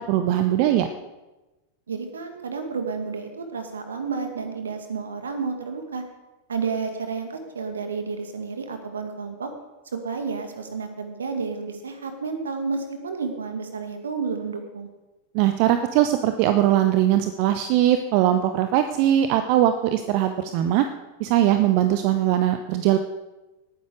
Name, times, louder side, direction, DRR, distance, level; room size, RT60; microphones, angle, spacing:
voice 1, 0.1-0.9 15.3-20.8 21.2-23.0, right 12 dB, 45° right, 8 dB, 0.8 m, -20 dB
voice 2, 1.9-6.0 6.5-9.5 9.9-14.9, right 5 dB, 70° right, 6 dB, 2.0 m, -31 dB
18.5 x 9.6 x 5.1 m, 1.1 s
figure-of-eight pair, 90°, 0 cm